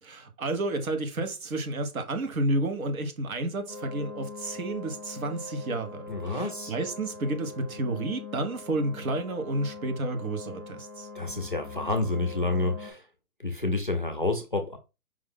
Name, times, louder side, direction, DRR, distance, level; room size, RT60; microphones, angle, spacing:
voice 1, 0.0-11.1, right 2 dB, 65° right, 1.4 m, -31 dB
sound 1, 3.7-12.9, left 3 dB, 5° left, 1.0 m, -42 dB
voice 2, 6.1-6.7 11.1-13.1 13.4-14.8, left 2 dB, 35° left, 0.4 m, -29 dB
5.0 x 2.7 x 3.6 m
hypercardioid pair, 180°, 46 cm